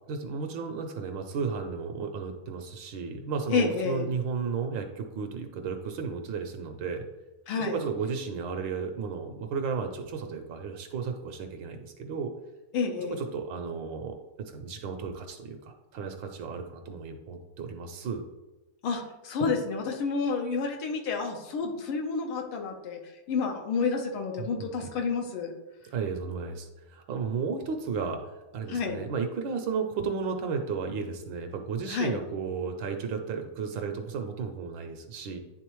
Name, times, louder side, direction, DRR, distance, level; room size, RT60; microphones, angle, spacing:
voice 1, 0.1-7.0 7.6-12.3 13.0-18.2 24.4-24.7 25.9-28.2 28.5-35.4, right 5 dB, 70° right, 5 dB, 1.2 m, -34 dB
voice 2, 3.5-4.1 7.5-7.8 12.7-13.2 18.8-25.5 28.7-29.0 31.8-32.2, left 5 dB, 85° left, 2 dB, 1.8 m, -30 dB
10.0 x 3.7 x 3.1 m, 1.1 s
omnidirectional pair, 2.3 m